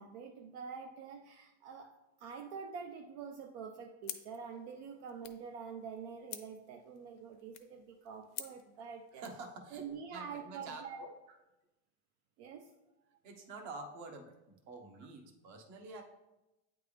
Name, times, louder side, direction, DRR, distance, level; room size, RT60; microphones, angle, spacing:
voice 1, 0.0-1.9 2.2-9.2 9.7-11.0 11.3-11.4 12.4-12.7, right 6 dB, 75° right, 3 dB, 0.6 m, -46 dB
sound 1, 4.0-9.4, left 12 dB, 70° left, 0.7 m, -50 dB
voice 2, 9.1-11.1 13.2-16.0, right 3 dB, 55° right, 4 dB, 1.1 m, -48 dB
8.5 x 3.4 x 3.3 m, 0.99 s
supercardioid pair, 125°, 34 cm